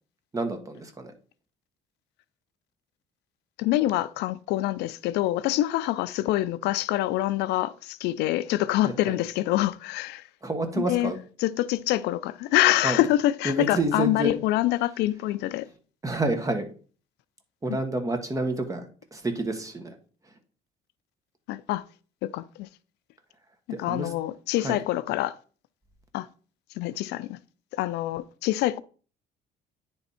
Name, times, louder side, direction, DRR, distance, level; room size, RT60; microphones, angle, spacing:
voice 1, 0.3-1.1 8.8-9.2 10.4-11.2 12.8-13.0 13.4-14.4 16.0-16.7 17.6-18.8 19.1-20.0 23.7-24.1 24.6-24.8, right 2 dB, 20° right, 1.3 m, -29 dB
voice 2, 3.6-10.3 10.8-11.1 11.4-15.7 17.7-17.8 21.5-21.8 22.2-22.7 23.7-25.4 26.1-26.3 26.8-27.4 27.7-28.8, left 15 dB, 85° left, 0.4 m, -26 dB
9.8 x 3.5 x 4.2 m
cardioid pair, 110°, 17 cm